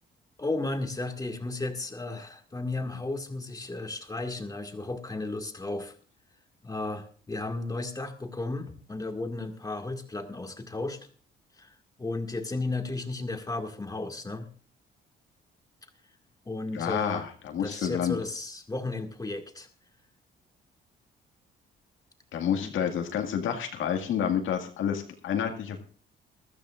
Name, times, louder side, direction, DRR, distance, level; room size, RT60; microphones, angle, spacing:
voice 1, 0.4-6.0 6.6-11.0 11.6-14.5 16.5-17.2 17.6-19.7 22.6-22.7, left 2 dB, 20° left, 4 dB, 2.0 m, -34 dB
voice 2, 16.7-18.2 22.3-25.8, left 8 dB, 80° left, 4 dB, 2.0 m, -29 dB
20.5 x 13.5 x 2.5 m, 0.41 s
cardioid pair, 90°, 20 cm